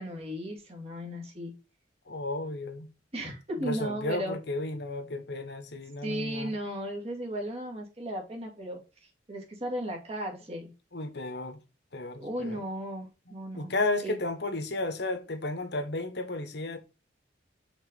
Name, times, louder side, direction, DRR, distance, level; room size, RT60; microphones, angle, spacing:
voice 1, 0.0-1.5 3.1-4.4 6.0-10.7 12.2-13.7 14.0-14.2, equal, 35° right, 2.4 m, -36 dB
voice 2, 2.1-2.9 3.5-6.5 10.9-11.6 11.9-12.7 13.3-16.8, left 2 dB, 65° left, 1.3 m, -33 dB
6.2 x 4.0 x 5.2 m
head